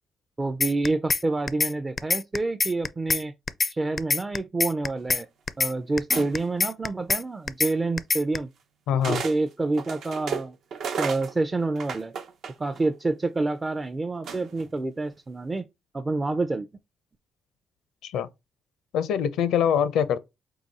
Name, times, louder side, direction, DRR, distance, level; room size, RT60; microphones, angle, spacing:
voice 1, 0.4-3.3 3.7-5.3 5.6-8.5 8.9-10.6 11.0-12.1 12.6-15.7 15.9-16.7, right 2 dB, 20° right, 0.4 m, -28 dB
sound 1, 0.6-1.2 1.5-1.7 2.0-3.2 3.5-3.7 4.0-5.2 5.5-5.7 6.0-7.2 7.5-7.7 8.0-8.4, left 5 dB, 35° left, 0.4 m, -24 dB
sound 2, 6.1-6.6 7.7-7.8 9.0-9.4 9.7-12.9 14.2-14.7, right 6 dB, 70° right, 0.8 m, -33 dB
voice 2, 8.9-9.2 18.0-18.3 18.9-20.2, left 8 dB, 85° left, 0.6 m, -24 dB
4.8 x 2.3 x 4.0 m
cardioid pair, 90°, 0 cm